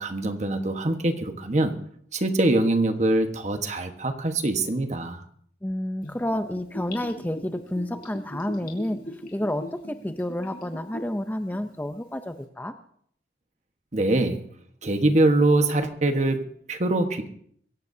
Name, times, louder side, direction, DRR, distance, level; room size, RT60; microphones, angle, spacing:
voice 1, 0.0-1.8 2.1-5.2 13.9-14.5 14.8-17.3, right 2 dB, 40° right, 7 dB, 1.3 m, -23 dB
voice 2, 5.6-9.0 9.3-12.7, left 1 dB, 10° left, 8 dB, 0.6 m, -30 dB
Gurgling / Bathtub (filling or washing), 6.0-11.2 11.5-11.6, left 1 dB, 50° left, 4.0 m, -40 dB
23.0 x 16.0 x 2.7 m, 0.64 s
head